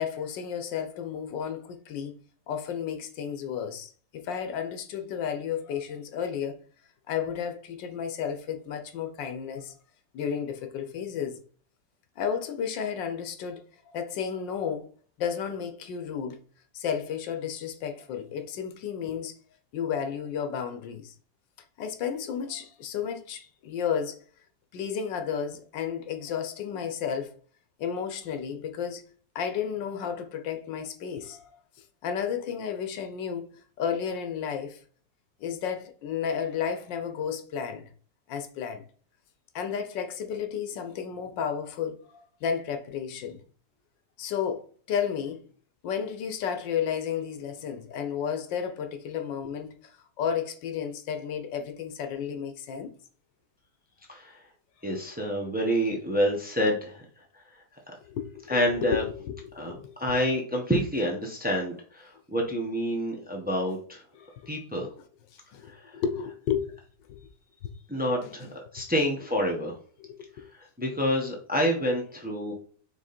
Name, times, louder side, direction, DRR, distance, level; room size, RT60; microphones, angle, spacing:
voice 1, 0.0-2.2 2.5-6.6 7.1-9.7 10.1-11.4 12.2-14.9 15.2-16.4 16.7-19.4 19.7-21.1 21.8-24.2 24.7-27.3 27.8-29.0 29.3-31.4 32.0-34.8 35.4-37.9 38.3-38.8 39.5-43.4 44.2-45.4 45.8-52.9 58.1-59.9 64.1-64.3 65.3-66.7 67.1-67.2 68.2-68.5 70.0-70.5 72.4-72.5, left 7 dB, 85° left, 1.5 m, -32 dB
voice 2, 54.8-57.0 58.5-59.0 59.5-64.0 64.5-64.9 67.9-68.5 68.7-69.8 70.8-72.5, equal, 5° right, 1.1 m, -27 dB
6.2 x 3.4 x 4.3 m
omnidirectional pair, 1.9 m